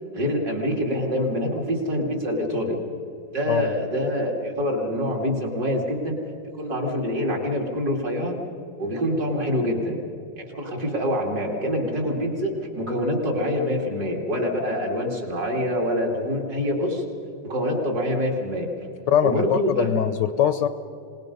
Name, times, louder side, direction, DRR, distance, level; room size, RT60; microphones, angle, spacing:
voice 1, 0.1-2.8 3.3-6.1 6.6-8.4 8.8-10.0 10.4-17.0 17.4-18.7 19.2-19.9, equal, 50° right, 0 dB, 3.2 m, -25 dB
voice 2, 19.1-20.7, left 9 dB, 70° left, 11 dB, 1.2 m, -22 dB
26.5 x 19.0 x 5.4 m, 2.7 s
omnidirectional pair, 2.2 m